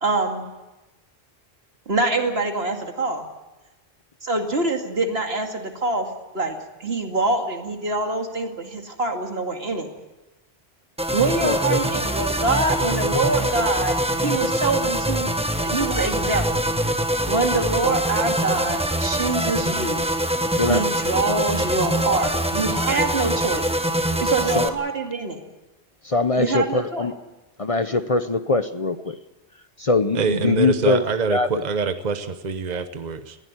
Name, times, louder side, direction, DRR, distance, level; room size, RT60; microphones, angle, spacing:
voice 1, 0.0-0.4 1.9-3.3 4.2-9.9 11.1-16.6 17.3-20.0 20.6-23.7 24.2-25.4 26.4-27.1, right 3 dB, 75° right, 4 dB, 2.6 m, -25 dB
sound 1, 11.0-24.7, right 1 dB, 5° right, 1.3 m, -24 dB
voice 2, 11.4-11.8 20.6-20.8 24.6-24.7 26.1-27.1 27.6-29.2 29.8-31.0 31.3-31.5, left 3 dB, 35° left, 11 dB, 0.8 m, -22 dB
voice 3, 30.1-33.4, right 5 dB, 45° right, 10 dB, 1.1 m, -25 dB
21.0 x 16.0 x 9.6 m, 1.1 s
omnidirectional pair, 1.1 m